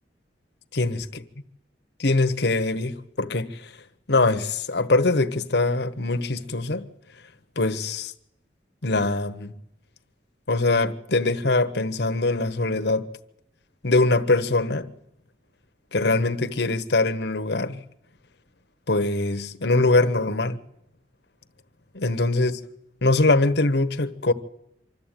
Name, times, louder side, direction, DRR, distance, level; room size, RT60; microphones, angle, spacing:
voice 1, 0.7-1.0 2.0-3.7 4.1-6.8 7.6-8.1 8.8-9.5 10.5-13.1 13.8-14.9 15.9-17.8 18.9-20.6 21.9-22.6 23.0-24.3, left 2 dB, 65° left, 1.2 m, -22 dB
25.5 x 13.0 x 9.2 m
head